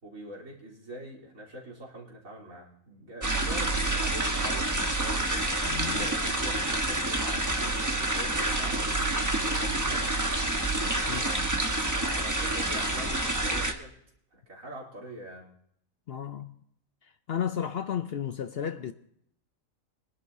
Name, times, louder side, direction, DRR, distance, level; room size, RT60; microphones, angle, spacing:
voice 1, 0.0-5.5 5.9-10.2 11.0-13.9 14.3-15.5, equal, 75° right, 3.6 m, -44 dB
sound 1, 3.2-13.7, right 2 dB, 15° right, 1.0 m, -28 dB
voice 2, 5.7-6.1 11.1-11.2 16.1-16.5 17.3-18.9, left 8 dB, 60° left, 0.7 m, -33 dB
24.0 x 11.0 x 2.7 m
omnidirectional pair, 1.4 m